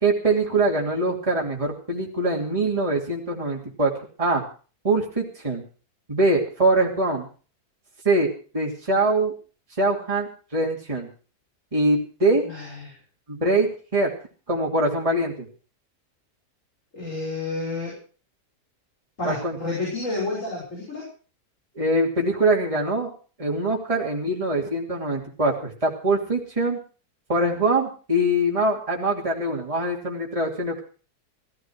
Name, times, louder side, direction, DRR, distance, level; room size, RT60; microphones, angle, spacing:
voice 1, 0.0-3.9 4.2-4.4 4.8-5.6 6.1-7.3 8.0-8.3 8.5-9.3 9.8-11.1 11.7-12.4 13.3-14.1 14.5-15.5 19.2-19.6 21.7-23.1 23.4-26.8 27.3-30.8, right 2 dB, 20° right, -2 dB, 2.9 m, -23 dB
voice 2, 12.4-12.9 16.9-18.0 19.2-21.1, left 2 dB, 55° left, -3 dB, 6.0 m, -30 dB
15.5 x 15.0 x 4.7 m, 0.38 s
omnidirectional pair, 1.6 m